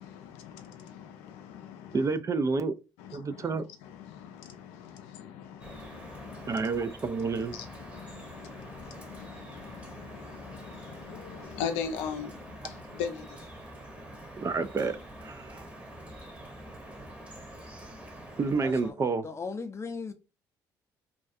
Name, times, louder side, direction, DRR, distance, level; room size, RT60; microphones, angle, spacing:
voice 1, 0.0-2.1 3.0-6.7 7.5-13.5, left 7 dB, 80° left, 0.4 m, -40 dB
voice 2, 1.9-2.8 3.1-3.6 6.5-7.5 14.4-15.6 18.4-19.3, right 4 dB, 30° right, 0.3 m, -29 dB
Drip, 5.6-18.9, right 1 dB, 15° right, 0.9 m, -46 dB
voice 3, 18.6-18.9 19.2-20.1, left 4 dB, 25° left, 0.5 m, -37 dB
2.3 x 2.2 x 2.6 m
hypercardioid pair, 55°, 10 cm